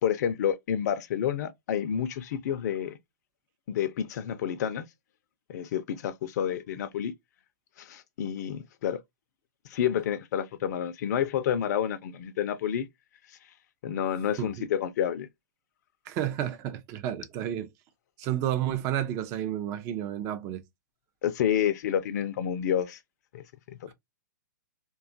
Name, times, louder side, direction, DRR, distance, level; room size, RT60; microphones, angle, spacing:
voice 1, 0.0-3.0 3.7-4.8 5.5-7.1 7.8-9.0 9.7-12.9 13.8-15.3 21.2-23.0 23.3-23.9, left 9 dB, 60° left, 0.4 m, -29 dB
voice 2, 16.1-17.7 18.2-20.6, right 11 dB, 30° right, 0.4 m, -31 dB
2.7 x 2.3 x 2.5 m
hypercardioid pair, 130°, 10 cm